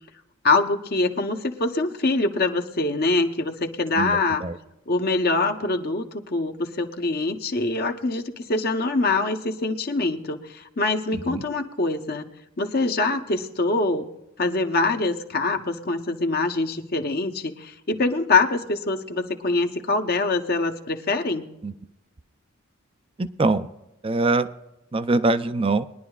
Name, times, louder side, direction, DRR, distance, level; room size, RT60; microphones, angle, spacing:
voice 1, 0.4-4.4 4.9-12.3 12.6-14.1 14.4-21.5, left 3 dB, 45° left, 6 dB, 0.9 m, -24 dB
voice 2, 4.0-4.6 11.3-11.4 21.6-21.7 23.2-23.7 24.0-24.5 24.9-25.8, right 3 dB, 25° right, 12 dB, 0.4 m, -23 dB
21.5 x 11.0 x 2.4 m, 0.90 s
head